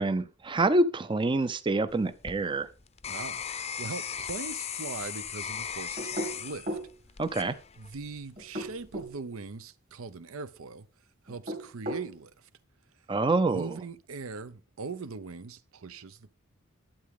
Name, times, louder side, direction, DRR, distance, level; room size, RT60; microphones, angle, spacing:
voice 1, 0.0-2.7 7.2-7.5 13.1-13.8, right 2 dB, 25° right, 0.5 m, -26 dB
sound 1, 1.9-8.1 8.6-9.1, left 8 dB, 30° left, 0.6 m, -38 dB
voice 2, 3.1-6.8 7.8-10.9 11.2-12.3 13.5-16.3, right 4 dB, 75° right, 0.6 m, -41 dB
sound 2, 6.0-6.9 8.4-9.1 11.3-12.1, equal, 45° right, 2.4 m, -35 dB
11.5 x 8.4 x 3.7 m
head